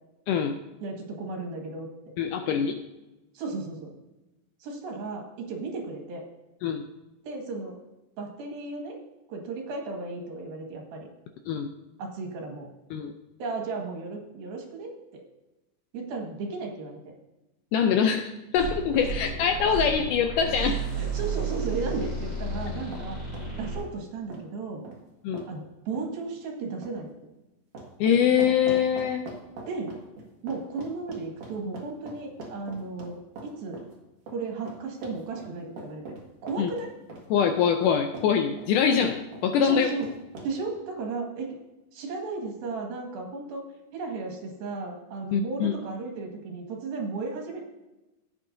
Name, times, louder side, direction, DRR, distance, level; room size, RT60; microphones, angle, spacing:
voice 1, 0.8-1.9 3.4-3.9 4.6-6.2 7.2-7.8 8.2-9.0 9.3-11.1 12.0-12.7 13.4-15.2 15.9-17.0 21.0-23.2 23.6-24.8 25.5-27.1 29.7-29.9 30.4-33.8 34.3-36.9 39.6-40.1 40.4-41.6 41.9-43.7 43.9-47.6, right 3 dB, 80° right, 1 dB, 3.6 m, -35 dB
voice 2, 2.2-2.8 6.6-6.8 11.5-11.7 12.9-13.1 17.7-20.8 25.2-25.4 28.0-29.3 36.6-36.7 37.3-39.9 45.3-45.7, left 7 dB, 80° left, 6 dB, 1.9 m, -24 dB
sound 1, 18.6-23.8, right 4 dB, 25° left, 3.9 m, -32 dB
sound 2, 22.6-23.1 23.3-23.5 23.8-23.9 24.3-24.4 24.8-25.0 25.3-25.5 25.9-26.1 26.8-26.9 27.7-33.9 34.3-38.3 38.6-38.7 39.0-40.7, right 2 dB, 60° right, 3.1 m, -41 dB
15.5 x 8.6 x 2.7 m, 1.0 s
omnidirectional pair, 4.2 m